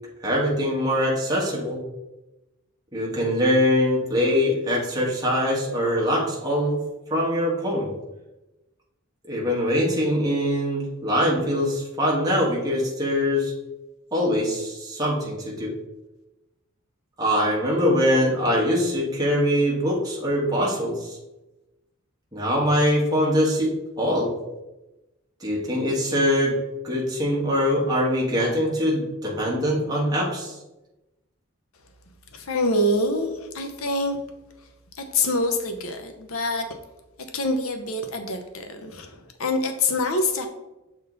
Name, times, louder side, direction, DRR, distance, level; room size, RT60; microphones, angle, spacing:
voice 1, 0.2-1.8 2.9-6.8 7.1-7.9 9.2-13.5 14.1-15.7 17.2-21.2 22.3-24.3 25.4-26.5 26.8-30.6, equal, 20° right, -4 dB, 1.5 m, -23 dB
voice 2, 32.3-34.2 34.9-36.7 37.3-40.5, left 2 dB, 80° left, 6 dB, 0.8 m, -25 dB
6.6 x 3.7 x 3.9 m, 0.99 s
head